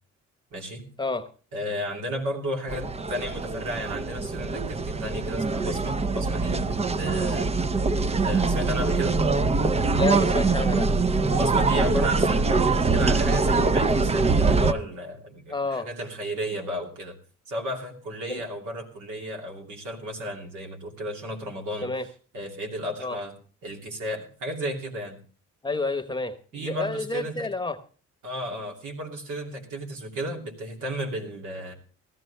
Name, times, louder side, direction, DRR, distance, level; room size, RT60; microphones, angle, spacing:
voice 1, 0.5-0.9 1.5-7.5 8.2-9.2 11.4-17.1 17.5-21.9 22.3-23.4 23.6-25.2 26.5-27.5 28.2-31.7, equal, 80° right, 2.9 m, -33 dB
sound 1, 2.7-14.7, right 3 dB, 20° right, 0.5 m, -23 dB
voice 2, 9.9-10.9 15.5-15.9 18.3-18.4 21.8-22.0 23.0-23.2 25.6-27.8, left 3 dB, 15° left, 1.0 m, -29 dB
16.5 x 13.5 x 3.3 m
cardioid pair, 90°, 30 cm